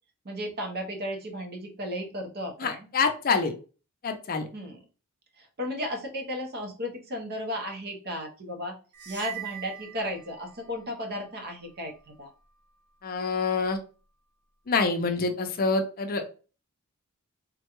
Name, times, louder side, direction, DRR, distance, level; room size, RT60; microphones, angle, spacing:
voice 1, 0.2-2.9 4.5-4.8 5.4-8.8 9.1-12.3, equal, 45° right, 2 dB, 0.8 m, -34 dB
voice 2, 2.6-3.6 4.0-4.5 13.0-13.8 14.7-16.2, left 4 dB, 40° left, 6 dB, 0.5 m, -26 dB
sound 1, 8.9-10.8, right 12 dB, 80° right, 0.9 m, -41 dB
3.6 x 2.2 x 2.9 m, 0.35 s
head